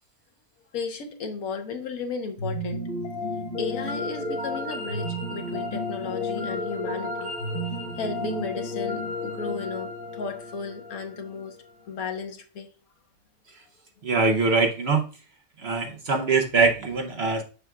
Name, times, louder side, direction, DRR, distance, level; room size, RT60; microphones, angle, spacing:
voice 1, 0.7-2.8 3.6-7.3 8.0-11.6 11.9-12.7, left 4 dB, 75° left, 1.4 m, -34 dB
sound 1, 2.4-11.5, left 2 dB, 30° left, 1.1 m, -32 dB
voice 2, 14.0-15.1 15.6-17.4, right 4 dB, 55° right, 0.9 m, -23 dB
6.7 x 6.0 x 2.3 m
omnidirectional pair, 1.5 m